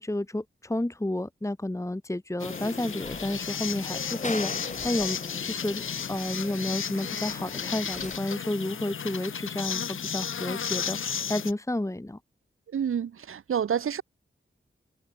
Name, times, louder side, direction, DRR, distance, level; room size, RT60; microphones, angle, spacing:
voice 1, 0.0-5.8 6.1-12.2, left 1 dB, 15° left, 1.3 m, -31 dB
sound 1, 2.4-11.5, left 7 dB, 75° left, 0.8 m, -34 dB
sound 2, 2.4-8.2, left 2 dB, 35° left, 4.0 m, -40 dB
voice 2, 12.7-14.0, right 8 dB, 90° right, 0.8 m, -28 dB
cardioid pair, 40°, 21 cm